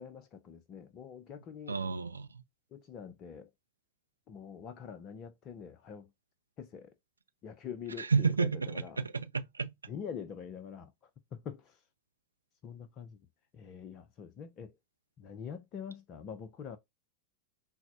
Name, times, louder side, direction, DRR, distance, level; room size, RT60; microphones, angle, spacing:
voice 1, 0.0-1.8 2.7-3.5 4.3-6.1 6.6-6.9 7.4-9.0 9.9-10.9 11.3-11.8 12.6-13.2 13.5-14.7 15.2-16.8, left 7 dB, 35° left, 0.5 m, -45 dB
voice 2, 1.7-2.3 8.0-9.7, right 5 dB, 75° right, 0.5 m, -31 dB
5.7 x 2.1 x 2.5 m
figure-of-eight pair, 90°, 0 cm